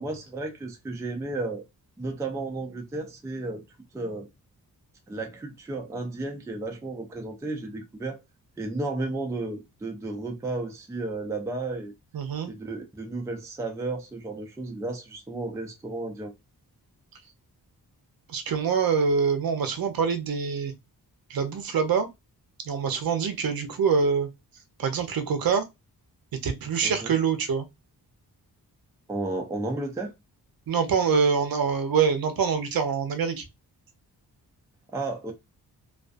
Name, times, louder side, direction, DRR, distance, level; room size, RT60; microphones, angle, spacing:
voice 1, 0.0-1.7 2.0-3.6 3.9-4.3 5.1-8.2 8.6-11.9 12.4-16.3 26.8-27.1 29.1-30.1 34.9-35.3, right 2 dB, 10° right, 0.3 m, -33 dB
voice 2, 12.1-12.5 18.3-20.7 21.3-22.1 22.6-24.3 24.8-25.7 26.4-27.7 30.7-33.4, right 6 dB, 65° right, 0.6 m, -25 dB
2.4 x 2.3 x 2.4 m
wide cardioid pair, 165°, 38 cm